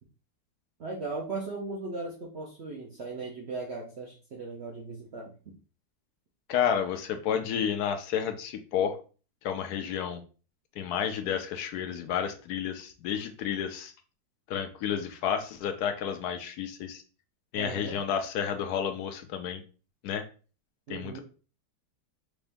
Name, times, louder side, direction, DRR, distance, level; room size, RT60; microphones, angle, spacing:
voice 1, 0.8-5.3 17.6-18.0 20.9-21.2, right 3 dB, 70° right, -2 dB, 0.6 m, -37 dB
voice 2, 6.5-9.0 9.4-10.2 10.8-13.9 14.5-17.0 17.5-19.6 20.0-20.2 20.9-21.2, left 8 dB, 75° left, 7 dB, 0.9 m, -31 dB
4.8 x 2.6 x 3.4 m, 0.37 s
omnidirectional pair, 2.1 m